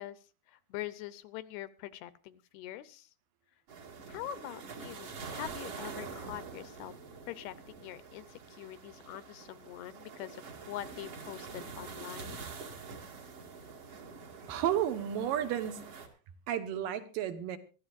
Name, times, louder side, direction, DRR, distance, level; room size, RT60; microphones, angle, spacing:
voice 1, 0.0-3.1 4.1-6.9 7.3-12.5, left 13 dB, 80° left, 15 dB, 2.7 m, -44 dB
sound 1, 3.7-16.1, right 5 dB, 45° right, 2.6 m, -46 dB
voice 2, 14.5-15.9 16.5-17.6, right 10 dB, 65° right, 10 dB, 2.6 m, -32 dB
23.5 x 13.0 x 2.5 m, 0.34 s
omnidirectional pair, 4.6 m